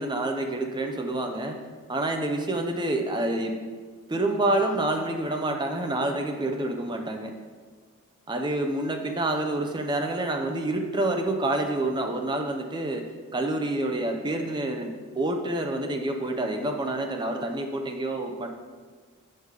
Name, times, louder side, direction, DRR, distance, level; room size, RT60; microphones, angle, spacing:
voice 1, 0.0-1.6 1.9-3.6 4.1-7.3 8.3-13.0 13.3-18.5, right 1 dB, 20° right, 4 dB, 0.5 m, -28 dB
6.5 x 5.3 x 4.8 m, 1.5 s
head